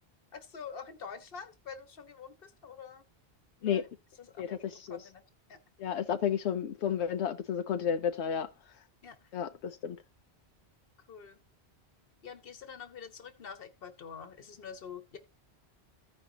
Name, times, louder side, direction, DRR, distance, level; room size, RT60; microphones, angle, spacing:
voice 1, 0.3-3.0 3.6-3.9 4.2-5.2 5.5-5.6 9.0-9.3 11.1-11.4 12.2-15.2, left 6 dB, 60° left, 1.3 m, -46 dB
voice 2, 4.4-5.0 5.8-8.5 9.3-10.0, left 8 dB, 85° left, 0.9 m, -32 dB
15.5 x 5.2 x 2.7 m
omnidirectional pair, 1.1 m